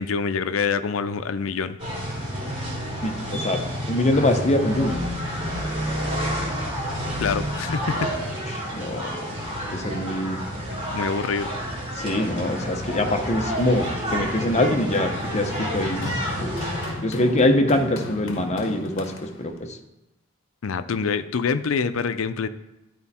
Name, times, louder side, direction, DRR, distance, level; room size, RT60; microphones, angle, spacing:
voice 1, 0.0-1.8 7.2-7.9 10.6-10.7 10.9-11.5 20.6-22.5, left 5 dB, 90° left, 12 dB, 0.5 m, -25 dB
sound 1, 1.8-16.9, equal, 30° right, 3.2 m, -29 dB
voice 2, 3.0-5.0 8.5-9.1 9.7-10.4 12.0-16.1 16.4-16.6 17.0-19.7, left 1 dB, 35° left, 4 dB, 0.9 m, -24 dB
Run, 13.3-19.6, left 2 dB, 70° left, 1.0 m, -37 dB
12.0 x 4.4 x 4.2 m, 0.95 s
head